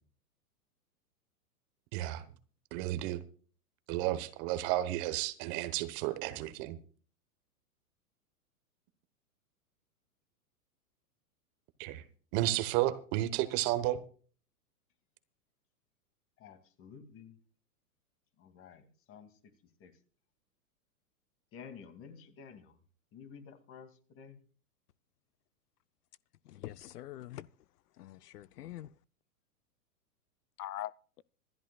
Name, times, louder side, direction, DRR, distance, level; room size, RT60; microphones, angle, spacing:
voice 1, 1.9-2.2 2.7-3.2 3.9-6.8 11.8-12.0 12.3-14.0, right 15 dB, 35° right, 1.1 m, -32 dB
voice 2, 16.4-17.4 18.4-19.5 19.8-19.9 21.5-22.8 23.1-24.4, left 6 dB, 30° left, 2.3 m, -52 dB
voice 3, 26.5-27.5 28.0-28.9 30.6-30.9, left 13 dB, 75° left, 0.6 m, -43 dB
26.5 x 11.5 x 2.3 m
hypercardioid pair, 130°, 46 cm